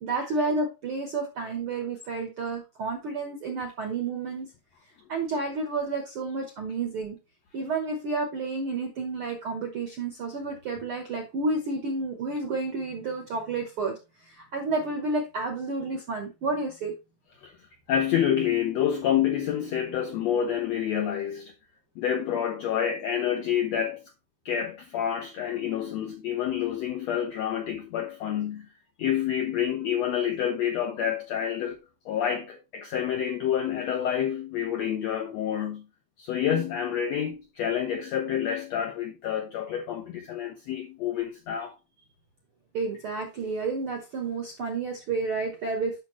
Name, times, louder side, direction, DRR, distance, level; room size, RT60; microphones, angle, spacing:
voice 1, 0.0-4.5 5.1-7.2 7.5-14.0 14.2-16.9 42.7-46.0, right 3 dB, 70° right, 1.2 m, -30 dB
voice 2, 17.9-21.5 22.0-24.0 24.4-28.7 29.0-31.8 32.0-35.8 36.2-41.7, left 9 dB, 80° left, 1.5 m, -28 dB
8.2 x 6.2 x 3.0 m
omnidirectional pair, 4.1 m